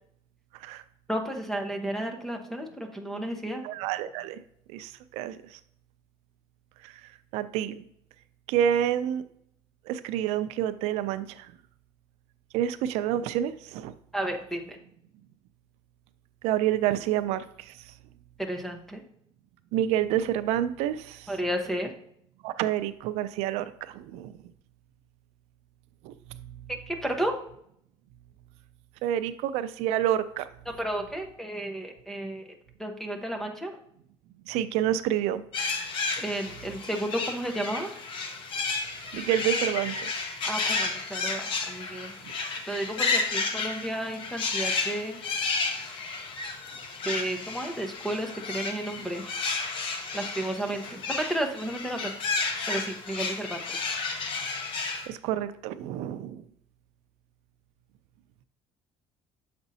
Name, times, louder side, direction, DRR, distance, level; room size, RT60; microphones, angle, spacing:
voice 1, 1.1-3.7 14.1-14.8 18.4-19.0 21.3-21.9 26.7-27.3 30.8-32.5 32.8-33.8 36.2-37.9 40.4-42.1 42.7-45.2 47.0-49.3 50.1-52.1 52.7-53.8, right 1 dB, 5° left, 4 dB, 0.8 m, -32 dB
voice 2, 3.6-4.4 4.7-5.6 6.8-6.9 7.3-7.8 8.5-9.2 9.9-11.5 12.5-13.9 16.4-17.9 19.7-21.3 22.4-24.4 26.0-26.5 29.0-30.5 34.5-35.4 39.1-40.1 42.2-42.3 54.8-56.4, right 11 dB, 85° right, 12 dB, 0.4 m, -28 dB
sound 1, 35.5-55.1, left 4 dB, 55° left, 0.9 m, -32 dB
6.9 x 5.1 x 2.7 m, 0.69 s
cardioid pair, 140°, 11 cm